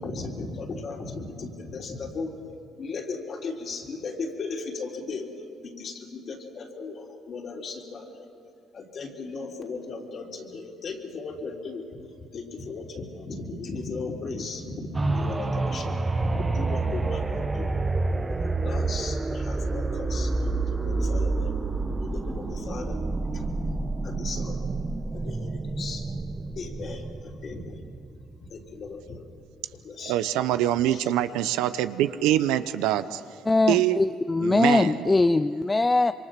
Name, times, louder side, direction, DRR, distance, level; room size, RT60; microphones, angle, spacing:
voice 1, 0.0-2.3 2.8-5.3 5.6-8.3 8.7-12.0 12.3-17.8 18.3-20.3 20.7-21.6 22.0-23.0 23.3-23.4 24.0-24.6 25.1-26.1 26.5-27.8 28.4-29.2 29.7-30.1 30.9-31.1, left 4 dB, 50° left, 0 dB, 3.6 m, -36 dB
sound 1, 14.9-28.6 29.1-29.2, right 3 dB, 25° right, 1.1 m, -28 dB
voice 2, 30.0-33.2 33.7-34.0 34.4-35.1, right 13 dB, 90° right, 12 dB, 0.7 m, -24 dB
voice 3, 33.5-36.1, left 2 dB, 20° left, 11 dB, 0.5 m, -22 dB
26.0 x 24.0 x 5.9 m, 2.8 s
cardioid pair, 90°, 0 cm